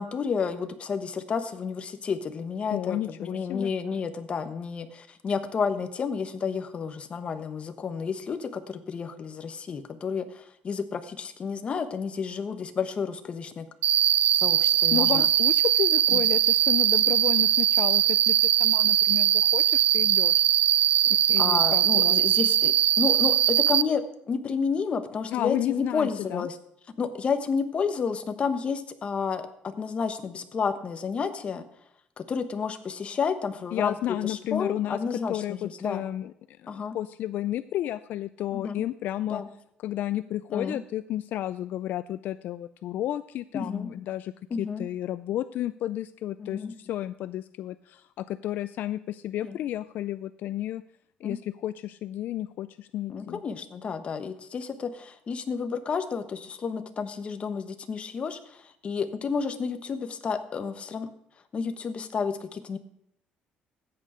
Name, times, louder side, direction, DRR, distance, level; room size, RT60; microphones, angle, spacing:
voice 1, 0.0-13.7 14.3-15.3 16.1-16.2 21.4-26.6 27.0-31.6 32.2-36.0 36.7-37.0 38.5-38.8 39.3-39.5 40.5-40.8 43.5-43.9 44.5-44.9 46.4-46.7 49.4-49.6 51.2-51.4 53.1-61.1 61.5-62.8, left 5 dB, 35° left, 9 dB, 1.1 m, -31 dB
voice 2, 2.7-3.7 14.9-20.4 21.1-22.2 25.3-26.5 33.7-35.0 35.3-39.4 39.8-44.3 44.6-50.8 51.2-53.4, left 13 dB, 65° left, 14 dB, 0.4 m, -32 dB
Cricket, 13.8-23.8, right 10 dB, 55° right, 0.5 m, -21 dB
13.5 x 8.8 x 5.0 m, 0.74 s
cardioid pair, 130°, 3 cm